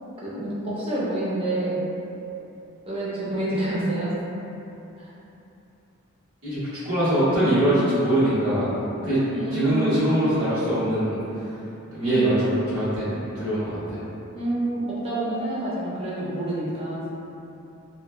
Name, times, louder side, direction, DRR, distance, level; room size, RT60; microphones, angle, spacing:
voice 1, 0.2-1.8 2.8-4.1 9.3-10.1 12.0-12.3 14.3-17.1, right 2 dB, 25° right, -9 dB, 0.6 m, -28 dB
voice 2, 6.8-8.7 9.0-9.2 9.5-11.2 11.9-14.0, right 1 dB, 85° right, -13 dB, 1.2 m, -22 dB
3.0 x 2.2 x 2.2 m, 2.9 s
head